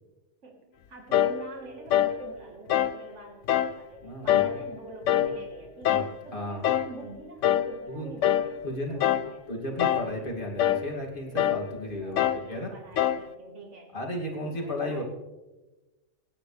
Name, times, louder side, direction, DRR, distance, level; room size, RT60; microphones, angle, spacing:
voice 1, 0.4-9.5 12.0-14.0 14.5-15.0, right 3 dB, 80° right, 1 dB, 2.2 m, -46 dB
sound 1, 1.1-1.4 1.9-2.2 2.7-3.0 3.5-3.8 4.3-4.6 5.1-5.4 5.9-6.1 6.6-6.9 7.4-7.7 8.2-8.5 9.0-9.3 9.8-10.1 10.6-10.9 11.4-11.7 12.2-12.5 13.0-13.3, left 11 dB, 85° left, 1.0 m, -24 dB
voice 2, 4.0-4.6 5.1-5.2 5.9-6.1 6.3-6.7 7.9-8.1 8.6-9.0 9.5-12.7 13.9-15.0, left 1 dB, 45° left, -1 dB, 2.9 m, -34 dB
25.5 x 10.5 x 3.4 m, 1.1 s
omnidirectional pair, 1.2 m